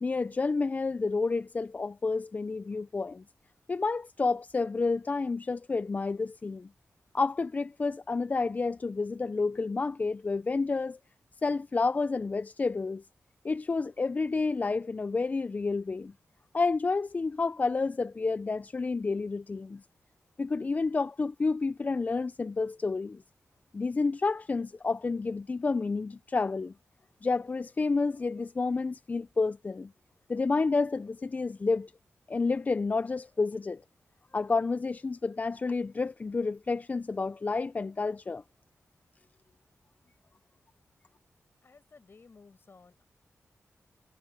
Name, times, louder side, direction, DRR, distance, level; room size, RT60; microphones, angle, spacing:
voice 1, 0.0-3.2 3.7-6.7 7.1-11.0 11.4-13.0 13.4-16.1 16.5-19.8 20.4-23.2 23.7-26.7 27.2-29.9 30.3-31.9 32.3-33.8 34.3-38.4, left 4 dB, 30° left, 0.3 m, -30 dB
voice 2, 41.6-43.1, left 4 dB, 50° left, 6.8 m, -56 dB
wide cardioid pair, 100°, 5 cm